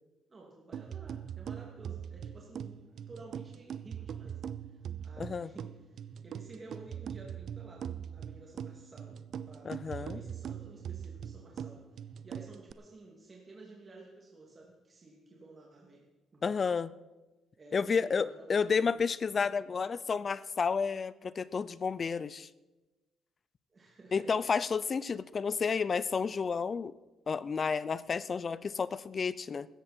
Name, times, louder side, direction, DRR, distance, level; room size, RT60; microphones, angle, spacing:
voice 1, 0.3-4.4 4.7-9.2 9.5-11.9 12.2-16.0 16.3-16.6 17.6-19.0 23.7-24.4, right 2 dB, 35° right, -2 dB, 2.6 m, -53 dB
sound 1, 0.7-12.7, right 8 dB, 65° right, 0.5 m, -42 dB
voice 2, 5.2-5.5 9.6-10.2 16.4-16.9 17.7-22.5 24.1-26.9 27.3-29.7, left 5 dB, 40° left, 18 dB, 0.5 m, -31 dB
16.0 x 14.0 x 4.4 m, 1.1 s
cardioid pair, 90°, 0 cm